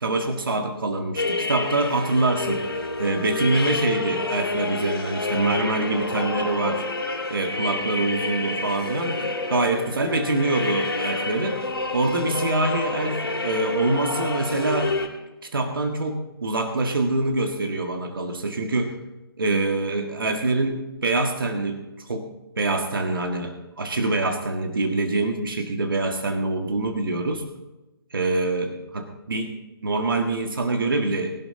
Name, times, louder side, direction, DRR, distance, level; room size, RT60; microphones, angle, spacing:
voice 1, 0.0-2.7 3.0-6.8 7.3-11.6 11.9-14.9 15.4-19.0 19.4-22.3 22.6-27.4 28.1-29.5 29.8-31.3, right 2 dB, 65° right, 4 dB, 1.8 m, -25 dB
sound 1, 1.2-15.1, left 2 dB, 75° left, 3.0 m, -28 dB
20.0 x 11.5 x 3.9 m, 1.0 s
figure-of-eight pair, 145°, 13 cm